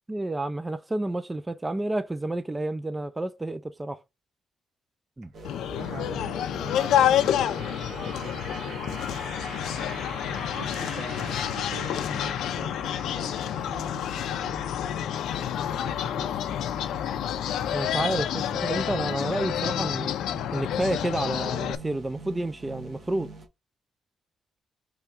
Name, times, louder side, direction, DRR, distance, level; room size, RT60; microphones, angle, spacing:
voice 1, 0.1-4.0 5.2-5.3 17.7-20.1 20.5-23.3, right 1 dB, 10° right, 0.3 m, -30 dB
sound 1, 5.3-23.5, right 2 dB, 50° right, 1.3 m, -42 dB
sound 2, 5.4-21.8, left 10 dB, 85° left, 0.5 m, -29 dB
voice 2, 5.4-9.3 10.5-15.0 15.7-16.3, right 4 dB, 80° right, 1.4 m, -45 dB
3.5 x 3.5 x 4.1 m
cardioid pair, 155°, 0 cm